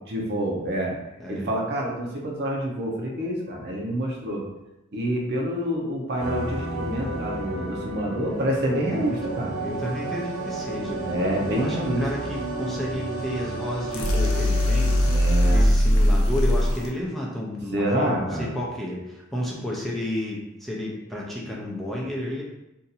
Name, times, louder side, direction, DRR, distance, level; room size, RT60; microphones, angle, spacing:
voice 1, 0.1-1.0 1.3-4.4 4.9-9.5 11.0-12.0 15.0-15.7 17.7-18.5, right 1 dB, 55° right, -1 dB, 0.7 m, -27 dB
sound 1, 6.2-15.6, right 2 dB, 75° right, 1.0 m, -33 dB
voice 2, 8.9-9.2 9.6-11.2 11.5-22.4, left 1 dB, ahead, -4 dB, 0.5 m, -32 dB
sound 2, 13.9-16.9, left 1 dB, 75° left, 0.6 m, -20 dB
2.7 x 2.5 x 4.0 m, 0.92 s
head